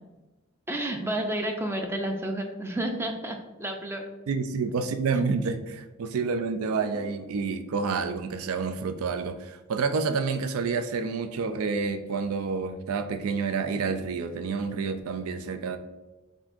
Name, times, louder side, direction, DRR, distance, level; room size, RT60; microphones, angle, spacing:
voice 1, 0.7-4.0 4.6-4.7, right 1 dB, 10° right, 3 dB, 0.4 m, -31 dB
voice 2, 4.3-15.8, right 5 dB, 80° right, 9 dB, 0.4 m, -29 dB
7.2 x 2.7 x 2.5 m, 1.1 s
head